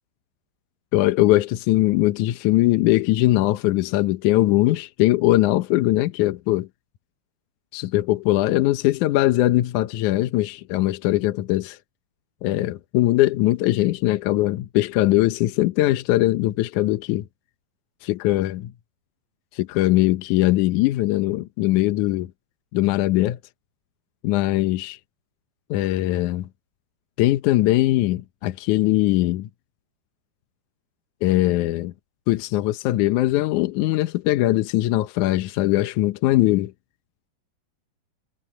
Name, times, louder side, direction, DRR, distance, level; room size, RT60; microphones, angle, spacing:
voice 1, 0.9-6.7 7.7-11.8 12.4-17.3 18.0-18.7 19.5-22.3 22.7-23.4 24.2-25.0 25.7-26.5 27.2-29.5 31.2-31.9 32.3-36.7, left 16 dB, 75° left, 1.9 m, -21 dB
omnidirectional pair, 4.3 m